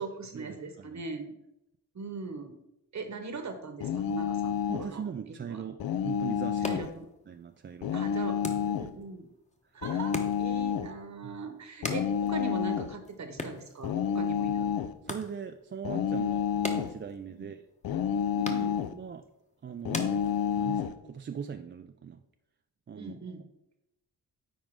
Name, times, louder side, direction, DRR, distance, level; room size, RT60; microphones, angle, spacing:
voice 1, 0.0-1.3 1.9-2.6 2.9-5.0 5.3-5.6 6.6-7.1 7.9-8.4 8.7-9.3 9.7-14.7 17.3-17.5 18.3-18.9 23.0-23.5, right 4 dB, 45° right, 7 dB, 1.2 m, -40 dB
sound 1, 3.8-4.9 5.8-6.9 7.8-8.9 9.8-10.9 11.8-13.0 13.8-15.0 15.8-17.0 17.8-19.0 19.9-21.0, left 8 dB, 65° left, 0.5 m, -29 dB
voice 2, 4.7-5.8 6.0-8.1 8.6-8.7 11.2-11.4 15.0-17.6 18.9-19.2 19.6-20.2 20.5-22.2 22.9-23.1, right 7 dB, 30° right, 6 dB, 0.4 m, -40 dB
sound 2, 6.4-20.9, left 2 dB, 20° left, 1.1 m, -44 dB
10.0 x 3.9 x 3.7 m, 0.85 s
cardioid pair, 65°, 38 cm